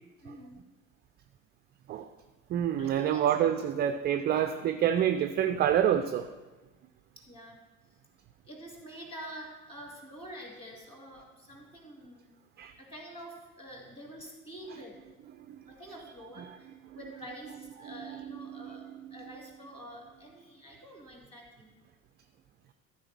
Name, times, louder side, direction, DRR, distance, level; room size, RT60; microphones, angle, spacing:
voice 1, 0.2-0.5 2.8-3.9 4.3-4.9 7.3-7.6 8.4-12.3 12.8-15.0 15.7-21.7, equal, 15° left, 0 dB, 2.6 m, -47 dB
voice 2, 2.5-6.3 12.6-12.7 15.5-15.6 18.5-18.6, right 10 dB, 25° right, 8 dB, 0.4 m, -27 dB
13.5 x 4.5 x 6.1 m, 1.2 s
figure-of-eight pair, 60°, 39 cm